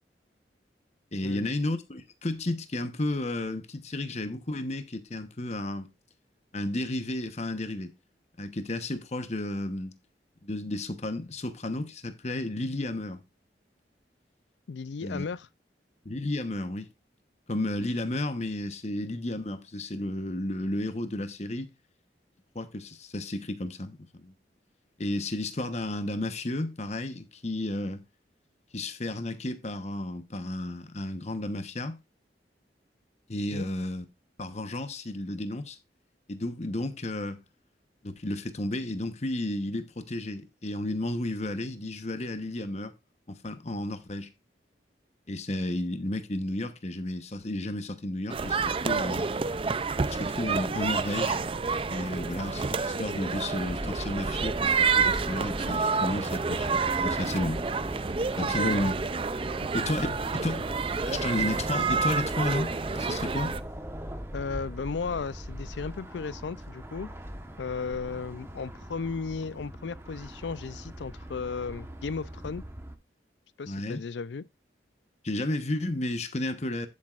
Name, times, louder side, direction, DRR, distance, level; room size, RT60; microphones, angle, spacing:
voice 1, 1.1-5.9 6.5-7.9 8.4-9.9 10.4-13.2 15.0-15.2 16.0-16.9 17.5-21.7 22.5-24.3 25.0-28.0 28.7-32.0 33.3-34.0 34.4-35.8 36.3-37.4 38.0-42.9 43.3-44.3 45.3-49.3 50.1-51.4 51.9-57.6 58.4-58.9 59.7-60.1 60.3-60.7 61.1-62.7 63.0-63.5 73.7-74.0 75.2-76.9, left 1 dB, 40° left, 1.0 m, -32 dB
voice 2, 14.7-15.5 33.5-33.7 58.4-58.9 59.6-60.2 64.3-67.1 67.6-72.7 73.6-74.5, left 5 dB, 80° left, 0.5 m, -35 dB
sound 1, 48.3-63.6, right 5 dB, 30° right, 0.5 m, -29 dB
sound 2, 53.7-72.9, equal, 15° right, 1.1 m, -40 dB
11.5 x 7.5 x 2.5 m
head